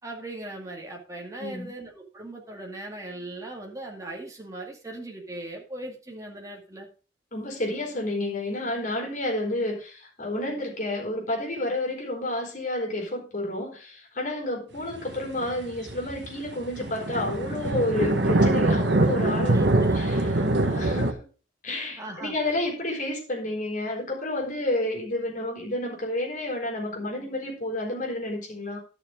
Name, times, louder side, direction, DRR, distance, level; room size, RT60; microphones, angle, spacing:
voice 1, 0.0-6.9 19.5-20.1 22.0-22.5, right 2 dB, 15° right, 0 dB, 2.2 m, -39 dB
voice 2, 1.4-1.7 7.3-21.2 21.6-28.8, left 1 dB, 40° left, 0 dB, 4.4 m, -30 dB
sound 1, 14.9-21.1, right 2 dB, 65° right, 1.4 m, -24 dB
11.5 x 6.7 x 5.0 m, 0.36 s
head